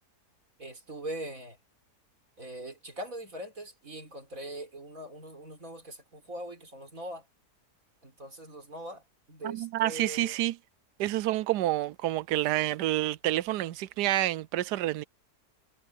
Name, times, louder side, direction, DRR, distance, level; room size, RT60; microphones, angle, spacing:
voice 1, 0.6-1.6 2.4-7.3 8.0-9.0 9.3-10.4, right 1 dB, 55° right, 4.7 m, -41 dB
voice 2, 9.4-10.6 11.0-15.0, right 15 dB, 85° right, 1.2 m, -28 dB
omnidirectional pair, 1.7 m